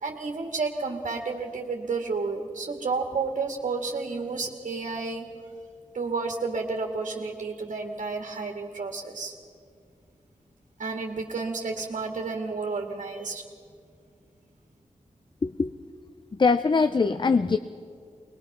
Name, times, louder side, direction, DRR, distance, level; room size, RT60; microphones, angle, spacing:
voice 1, 0.0-5.3 5.9-9.4 10.8-13.4, right 4 dB, 65° right, 2 dB, 1.8 m, -31 dB
voice 2, 16.4-17.6, left 4 dB, 35° left, 11 dB, 0.5 m, -22 dB
21.5 x 20.5 x 5.9 m, 2.3 s
wide cardioid pair, 75°, 13 cm